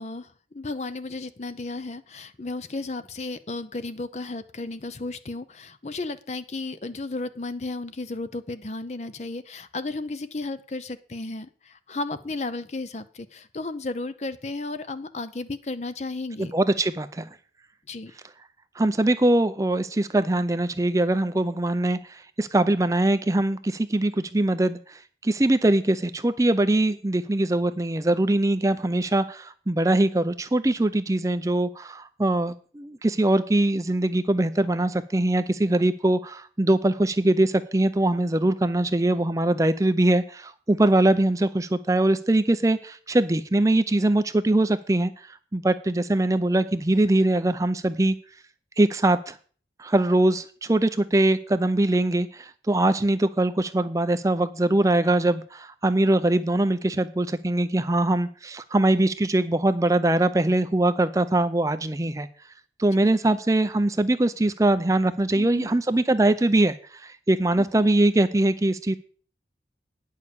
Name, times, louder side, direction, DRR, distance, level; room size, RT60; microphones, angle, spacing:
voice 1, 0.0-16.5 17.9-18.1 63.2-63.4 65.4-65.7 67.6-67.9, left 2 dB, 40° left, 12 dB, 0.6 m, -34 dB
voice 2, 16.4-17.3 18.8-48.2 48.8-49.4 49.8-62.3 62.8-69.0, right 1 dB, 20° right, 11 dB, 0.5 m, -22 dB
9.7 x 6.5 x 6.7 m, 0.43 s
head